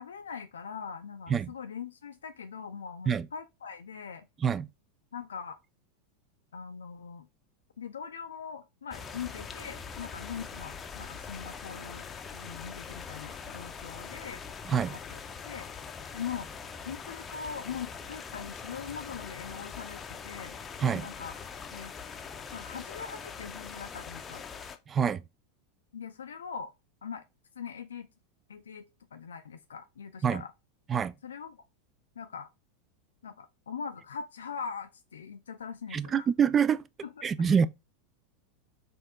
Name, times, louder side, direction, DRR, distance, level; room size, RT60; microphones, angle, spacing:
voice 1, 0.0-4.3 5.1-5.6 6.5-7.3 7.8-14.4 14.7-15.2 15.5-15.7 16.1-16.5 16.8-21.4 21.7-21.9 22.5-24.4 25.9-26.7 27.0-27.2 27.6-28.1 28.5-30.5 31.2-31.6 32.2-32.5 33.2-36.3 37.2-37.5, left 6 dB, 70° left, 0.4 m, -41 dB
sound 1, 8.9-24.8, left 6 dB, 20° left, 0.6 m, -42 dB
voice 2, 24.9-25.2 30.2-30.4 30.9-31.1 35.9-36.8 37.2-37.7, right 7 dB, 25° right, 0.3 m, -26 dB
4.2 x 2.7 x 3.6 m
figure-of-eight pair, 85°, 0 cm